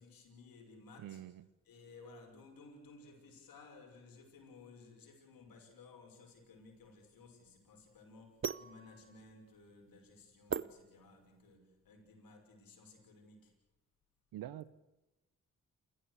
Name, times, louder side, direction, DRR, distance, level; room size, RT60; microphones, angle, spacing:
voice 1, 0.0-1.2 1.6-13.5, left 3 dB, 85° left, 3 dB, 6.2 m, -57 dB
voice 2, 1.0-1.4 14.3-14.7, right 12 dB, 90° right, 18 dB, 1.0 m, -45 dB
sound 1, 6.4-11.6, right 6 dB, 35° right, 0.8 m, -43 dB
29.5 x 14.5 x 8.2 m, 1.0 s
supercardioid pair, 45°, 34 cm